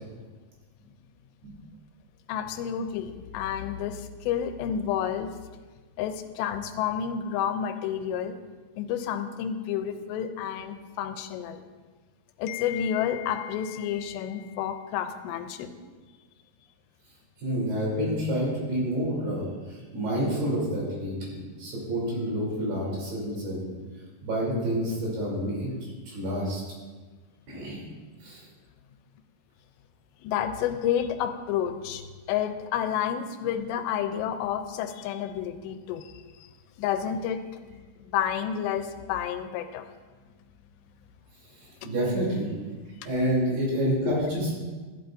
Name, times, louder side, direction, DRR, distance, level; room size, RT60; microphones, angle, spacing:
voice 1, 2.3-5.3 6.0-8.4 8.8-11.6 12.4-15.7 30.2-36.2 36.8-39.9 43.0-43.1 44.1-44.2, left 9 dB, 85° left, 8 dB, 2.8 m, -30 dB
voice 2, 17.4-23.7 24.2-25.7 26.1-26.6 27.5-27.8 28.2-28.4 41.6-42.5 43.0-44.6, equal, 70° right, -4 dB, 5.3 m, -28 dB
14.0 x 11.5 x 2.6 m, 1.4 s
omnidirectional pair, 4.9 m